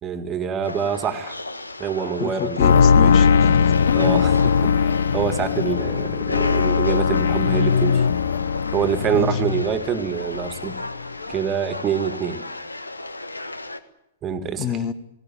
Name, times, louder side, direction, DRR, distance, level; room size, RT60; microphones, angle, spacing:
voice 1, 0.0-1.4 1.8-2.9 4.0-8.1 8.7-10.8 11.3-12.4 14.2-14.7, right 7 dB, 25° right, 11 dB, 1.9 m, -26 dB
sound 1, 0.6-13.8, left 2 dB, 85° left, 1.5 m, -35 dB
voice 2, 2.2-3.6 9.1-9.4 14.6-14.9, left 9 dB, 35° left, 12 dB, 1.6 m, -27 dB
sound 2, 2.6-10.1 10.3-11.0 11.3-11.4, left 6 dB, 65° left, 0.8 m, -19 dB
19.5 x 18.0 x 9.3 m, 0.86 s
figure-of-eight pair, 110°, 0 cm